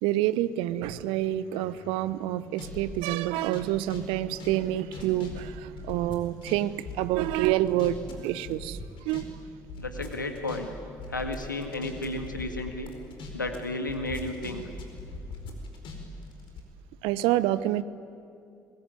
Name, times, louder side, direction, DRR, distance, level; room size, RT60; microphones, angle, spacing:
voice 1, 0.0-9.3 17.0-17.8, right 14 dB, 65° right, 16 dB, 0.9 m, -28 dB
sound 1, 1.2-3.0 3.4-6.6 6.8-8.1 8.4-9.2 9.5-13.6 13.9-16.6, left 3 dB, 55° left, 4.7 m, -41 dB
voice 2, 9.8-10.7 11.1-12.9 13.3-14.6, left 2 dB, 90° left, 6 dB, 1.9 m, -33 dB
26.5 x 21.5 x 9.7 m, 2.5 s
figure-of-eight pair, 50°, 10 cm